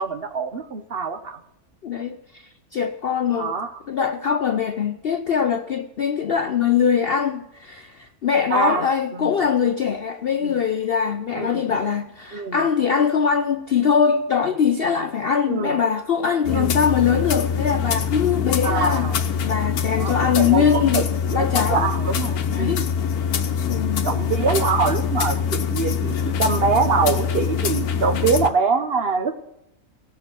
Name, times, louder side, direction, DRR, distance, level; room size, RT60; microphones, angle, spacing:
voice 1, 0.0-1.4 3.4-3.7 8.5-8.8 9.1-9.3 10.4-10.6 11.3-11.6 12.3-12.6 15.5-15.8 16.5-16.8 18.6-19.1 19.8-21.0 21.3-22.9 24.0-29.3, right 4 dB, 50° right, 6 dB, 0.9 m, -24 dB
voice 2, 1.8-3.5 3.9-19.1 19.4-21.9 22.5-22.8 23.7-24.2, left 7 dB, 60° left, 7 dB, 0.6 m, -22 dB
sound 1, 16.4-28.5, left 7 dB, 80° left, 1.3 m, -24 dB
17.5 x 6.6 x 6.1 m, 0.85 s
omnidirectional pair, 1.6 m